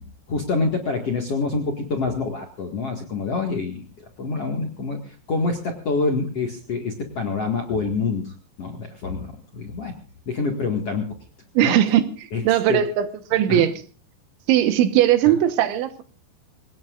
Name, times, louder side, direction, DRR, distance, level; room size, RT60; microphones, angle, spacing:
voice 1, 0.3-3.8 4.2-9.9 10.3-11.1 11.6-11.8 12.3-12.8 13.5-13.7 15.2-15.4, left 4 dB, 50° left, 3 dB, 1.9 m, -26 dB
voice 2, 11.6-12.1 12.5-13.7 14.5-16.0, right 11 dB, 75° right, 10 dB, 3.5 m, -19 dB
25.5 x 18.5 x 2.5 m, 0.35 s
omnidirectional pair, 5.5 m